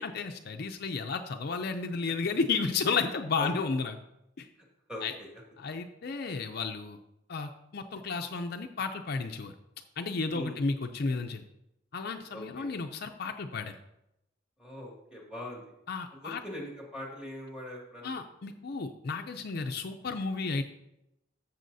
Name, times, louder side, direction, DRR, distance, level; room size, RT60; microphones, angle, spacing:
voice 1, 0.0-4.0 4.4-4.5 5.0-5.1 5.6-7.0 7.3-9.5 10.0-11.4 11.9-13.7 15.9-16.4 18.0-20.6, left 4 dB, 50° left, 5 dB, 0.5 m, -33 dB
voice 2, 4.9-5.3 10.3-10.6 12.3-12.7 14.6-15.7 16.1-18.2, left 1 dB, 5° right, -2 dB, 2.1 m, -42 dB
14.0 x 6.9 x 2.7 m, 0.85 s
head